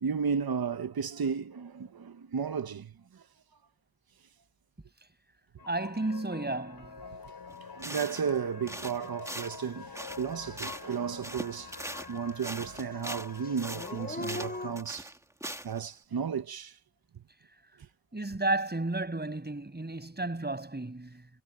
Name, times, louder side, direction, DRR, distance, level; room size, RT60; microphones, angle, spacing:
voice 1, 0.0-3.2 7.7-11.7 12.1-15.1 15.6-16.8, right 6 dB, 70° right, 1.0 m, -33 dB
sound 1, 5.6-14.8, left 5 dB, 80° left, 5.1 m, -46 dB
voice 2, 5.7-7.0 18.1-21.3, right 2 dB, 25° right, 6.6 m, -32 dB
sound 2, 7.5-7.6 7.8-8.4 8.7-11.0 11.2-15.8, right 1 dB, 10° right, 1.8 m, -41 dB
Dog / Siren, 10.4-10.5 10.9-12.4 12.6-14.7, left 2 dB, 25° left, 7.4 m, -41 dB
wide cardioid pair, 100°, 38 cm